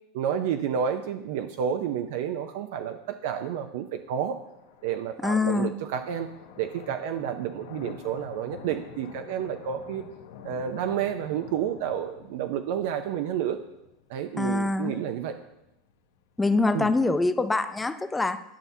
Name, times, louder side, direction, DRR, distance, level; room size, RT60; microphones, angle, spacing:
voice 1, 0.1-4.4 4.8-6.3 6.6-10.1 10.4-13.6 14.1-15.3 16.7-16.9, right 8 dB, 70° right, 7 dB, 0.5 m, -30 dB
sound 1, 3.2-17.1, left 8 dB, 85° left, 0.8 m, -49 dB
voice 2, 5.2-5.7 14.4-15.0 16.4-18.4, left 3 dB, 10° left, 11 dB, 0.4 m, -24 dB
11.0 x 5.6 x 2.7 m, 0.89 s
supercardioid pair, 135°, 0 cm